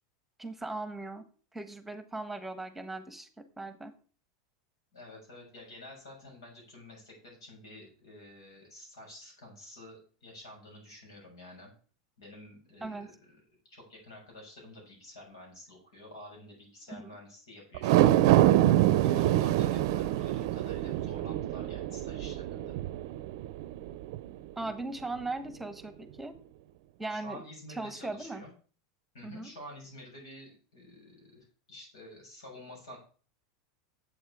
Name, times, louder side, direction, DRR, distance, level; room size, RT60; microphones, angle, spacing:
voice 1, 0.4-1.2 1.5-3.9 12.8-13.1 16.9-17.1 24.6-26.3 27.0-27.4 27.7-28.4 29.2-29.5, right 2 dB, 5° right, 10 dB, 1.2 m, -38 dB
voice 2, 4.9-11.7 12.2-13.4 13.7-18.3 19.0-22.8 27.1-28.5 29.1-33.0, left 1 dB, 85° left, 0 dB, 6.5 m, -49 dB
sound 1, 17.8-24.3 24.7-24.8, right 14 dB, 65° right, 0.6 m, -25 dB
10.0 x 7.8 x 4.8 m, 0.40 s
hypercardioid pair, 105°, 3 cm